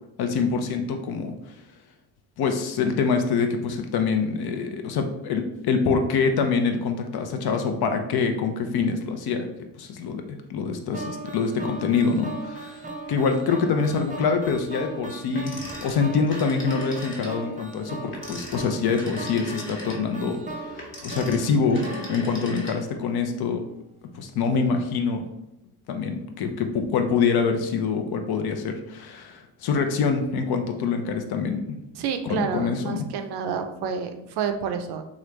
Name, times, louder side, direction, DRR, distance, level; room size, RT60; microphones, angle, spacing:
voice 1, 0.2-1.3 2.4-9.5 9.8-21.8 22.1-23.6 24.1-25.2 25.9-31.8 32.2-33.1, left 5 dB, 65° left, 5 dB, 0.6 m, -25 dB
sound 1, 10.9-23.1, right 2 dB, 20° right, 0.6 m, -38 dB
Telephone, 15.3-17.4 18.0-23.1, left 1 dB, 30° left, 1.0 m, -39 dB
voice 2, 32.0-35.0, right 7 dB, 70° right, 7 dB, 0.6 m, -29 dB
3.1 x 2.4 x 3.0 m, 0.85 s
supercardioid pair, 65°, 42 cm